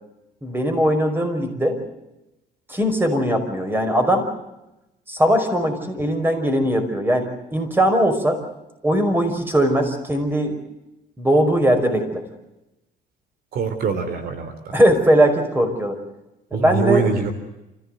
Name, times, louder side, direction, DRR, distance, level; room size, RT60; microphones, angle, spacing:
voice 1, 0.4-1.8 2.7-4.3 5.1-8.4 8.8-10.6 11.2-12.2 14.7-16.0 16.5-17.1, equal, 10° right, 6 dB, 5.3 m, -20 dB
voice 2, 13.5-14.7 16.5-17.3, right 6 dB, 65° right, 9 dB, 3.4 m, -24 dB
28.5 x 15.5 x 7.9 m, 0.95 s
cardioid pair, 110°, 17 cm